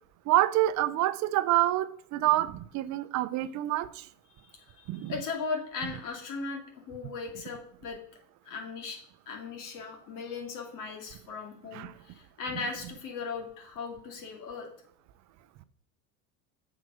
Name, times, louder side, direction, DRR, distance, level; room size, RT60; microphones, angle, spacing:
voice 1, 0.3-4.1 4.9-5.1 11.7-11.9, right 15 dB, 50° right, 15 dB, 0.6 m, -27 dB
voice 2, 4.4-6.6 6.9-8.0 8.4-9.0 9.3-14.7, left 4 dB, 60° left, 1 dB, 2.6 m, -38 dB
7.7 x 5.0 x 6.2 m, 0.62 s
supercardioid pair, 125°, 36 cm